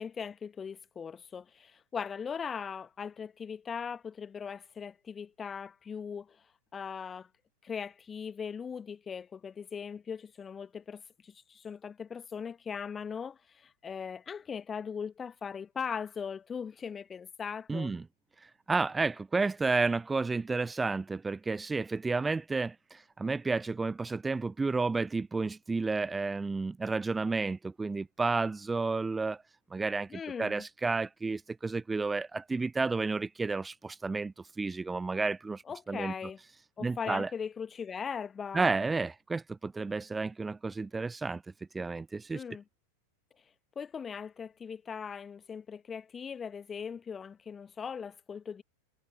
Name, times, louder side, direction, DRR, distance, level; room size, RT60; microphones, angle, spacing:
voice 1, 0.0-6.4 6.7-7.3 7.6-18.0 30.1-30.6 35.7-36.4 36.8-38.8 42.3-42.6 43.7-48.6, left 6 dB, 20° left, 1.6 m, -39 dB
voice 2, 17.7-18.0 18.4-29.4 29.7-35.6 35.9-36.1 36.8-37.3 38.5-41.4 41.7-42.4, right 3 dB, 10° right, 0.5 m, -31 dB
figure-of-eight pair, 90°, 0 cm